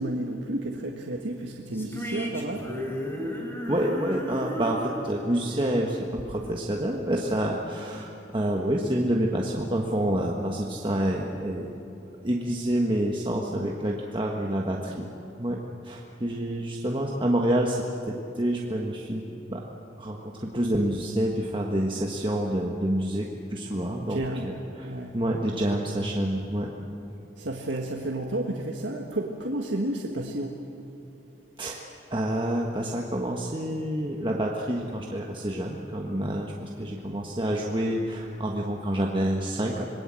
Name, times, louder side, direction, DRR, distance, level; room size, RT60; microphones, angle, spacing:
voice 1, 0.0-2.7 24.1-24.5 24.8-25.2 27.4-30.7, right 1 dB, 85° right, 1 dB, 1.7 m, -31 dB
sound 1, 1.7-7.1, equal, 15° left, 3.7 m, -35 dB
voice 2, 3.7-11.7 12.2-15.0 15.4-19.2 19.5-19.6 20.0-26.7 31.6-31.8 32.1-39.9, right 1 dB, 25° right, -1 dB, 1.5 m, -28 dB
27.0 x 20.5 x 7.7 m, 2.9 s
head